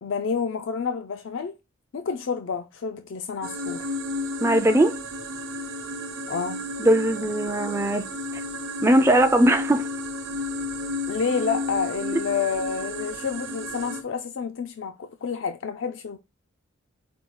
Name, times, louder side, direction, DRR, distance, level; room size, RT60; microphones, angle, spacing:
voice 1, 0.0-1.5 1.9-3.9 6.3-6.6 11.1-16.2, left 6 dB, 60° left, 0.4 m, -29 dB
sound 1, 3.4-14.0, left 1 dB, 65° right, 0.7 m, -32 dB
voice 2, 4.4-4.9 6.8-8.1 8.8-9.8, right 1 dB, 10° right, 0.3 m, -19 dB
5.1 x 2.3 x 4.5 m
head